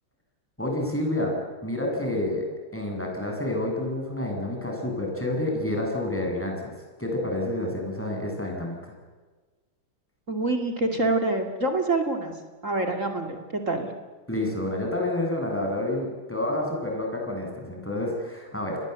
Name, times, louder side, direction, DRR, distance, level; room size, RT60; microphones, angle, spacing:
voice 1, 0.6-2.4 2.7-6.7 7.0-8.9 14.3-18.8, left 1 dB, 5° left, 1 dB, 7.9 m, -29 dB
voice 2, 10.3-12.4 12.6-13.9, right 2 dB, 40° right, 4 dB, 2.9 m, -26 dB
29.0 x 21.5 x 8.3 m, 1.4 s
omnidirectional pair, 2.2 m